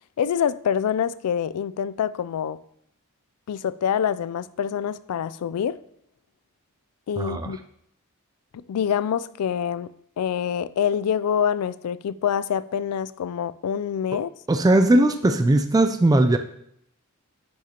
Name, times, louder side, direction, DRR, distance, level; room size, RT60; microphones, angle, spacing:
voice 1, 0.2-2.6 3.5-5.8 7.1-7.6 8.5-9.9 10.2-14.3, left 8 dB, 85° left, 0.3 m, -26 dB
voice 2, 7.2-7.5 14.5-16.4, right 1 dB, 15° right, 0.3 m, -19 dB
10.0 x 6.5 x 2.9 m
head